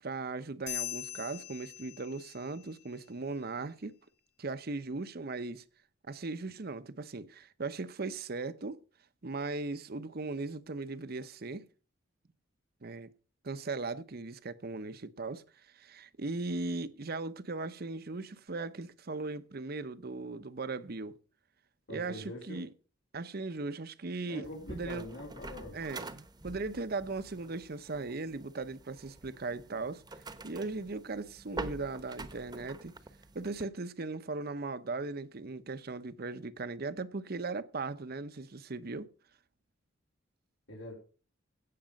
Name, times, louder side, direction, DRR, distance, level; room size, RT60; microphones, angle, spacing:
voice 1, 0.0-3.9 4.4-5.6 6.1-8.8 9.2-11.6 12.8-13.1 13.4-15.4 15.7-21.1 21.9-22.7 23.1-25.1 25.7-30.0 30.4-32.9 33.3-39.1, right 3 dB, 55° right, 0.8 m, -38 dB
sound 1, 0.7-2.5, left 11 dB, 65° left, 3.8 m, -41 dB
voice 2, 21.9-22.6 24.3-25.8 40.7-40.9, left 1 dB, 80° left, 4.2 m, -43 dB
sound 2, 24.4-33.6, right 2 dB, 20° right, 1.0 m, -46 dB
16.5 x 6.8 x 5.2 m
head